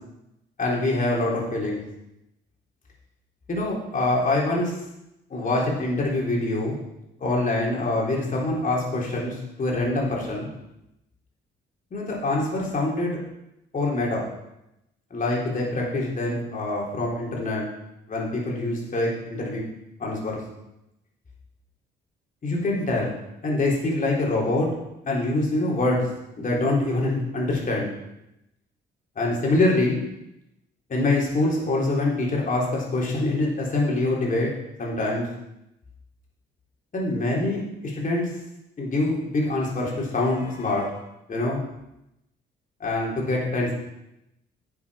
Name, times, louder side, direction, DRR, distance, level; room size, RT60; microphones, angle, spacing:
voice 1, 0.6-1.8 3.5-4.7 5.3-6.8 7.2-10.5 11.9-13.2 13.7-14.2 15.1-17.7 18.1-19.6 20.0-20.4 22.4-23.1 23.4-24.7 25.1-26.1 26.4-27.9 29.2-30.0 30.9-34.5 34.8-35.3 36.9-38.3 38.8-41.0 41.3-41.6 42.8-43.7, left 2 dB, 40° left, -3 dB, 3.6 m, -25 dB
10.5 x 7.2 x 4.9 m, 0.87 s
cardioid pair, 90°, 20 cm